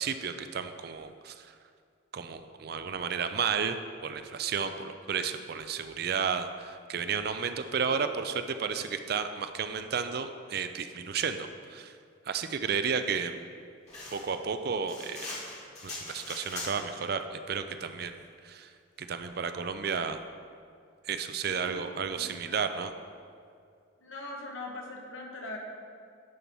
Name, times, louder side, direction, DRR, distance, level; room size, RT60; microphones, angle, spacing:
voice 1, 0.0-1.5 2.1-3.8 4.0-11.9 12.2-13.4 14.1-15.3 15.8-18.7 19.0-20.2 21.0-22.9, right 6 dB, 50° right, 9 dB, 0.4 m, -32 dB
sound 1, 13.9-17.0, left 2 dB, 35° left, 2.3 m, -41 dB
voice 2, 21.4-22.5 24.0-25.6, left 2 dB, 80° left, 0 dB, 1.3 m, -43 dB
10.0 x 4.5 x 5.4 m, 2.2 s
head